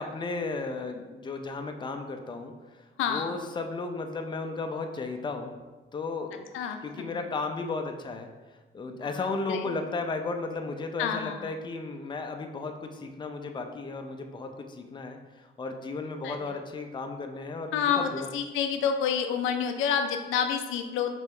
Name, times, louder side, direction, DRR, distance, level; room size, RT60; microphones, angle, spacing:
voice 1, 0.0-2.5 3.1-5.5 5.9-6.4 6.8-8.3 8.7-18.4, left 3 dB, 25° left, 5 dB, 0.5 m, -34 dB
voice 2, 11.0-11.5 16.2-16.4 17.7-21.2, left 7 dB, 85° left, 6 dB, 0.4 m, -28 dB
5.2 x 3.0 x 3.2 m, 1.3 s
cardioid pair, 90°, 20 cm